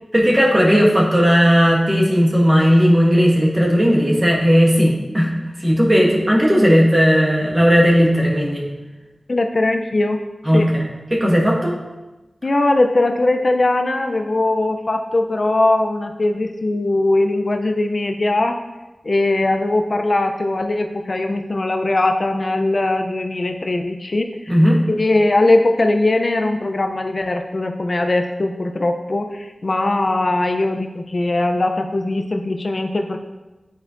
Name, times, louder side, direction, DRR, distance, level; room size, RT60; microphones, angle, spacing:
voice 1, 0.1-5.3 5.6-8.6 10.4-11.7 24.5-24.8, equal, 25° right, -2 dB, 1.4 m, -15 dB
voice 2, 9.3-10.2 10.5-10.7 12.4-18.6 19.0-24.4 24.9-33.2, left 2 dB, 50° left, 5 dB, 0.4 m, -20 dB
10.0 x 4.4 x 2.5 m, 1.1 s
wide cardioid pair, 75°, 0 cm